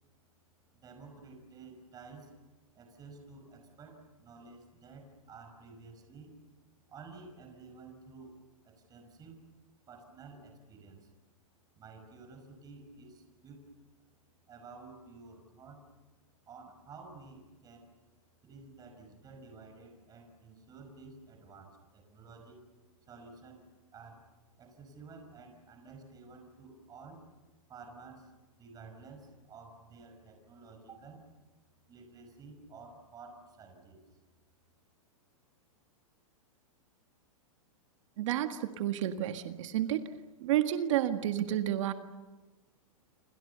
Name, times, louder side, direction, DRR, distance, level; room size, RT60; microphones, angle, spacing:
voice 1, 0.8-2.4 2.7-6.4 6.9-8.4 8.6-9.4 9.9-11.1 11.7-13.7 14.5-15.9 16.5-18.0 18.4-22.6 23.1-23.6 23.9-24.3 24.6-27.3 27.7-28.3 28.6-31.3 31.9-34.0, right 4 dB, 20° right, 5 dB, 5.6 m, -52 dB
voice 2, 38.2-40.1 40.4-41.9, right 12 dB, 60° right, 7 dB, 1.7 m, -30 dB
28.0 x 26.0 x 6.9 m, 1.2 s
hypercardioid pair, 140°, 18 cm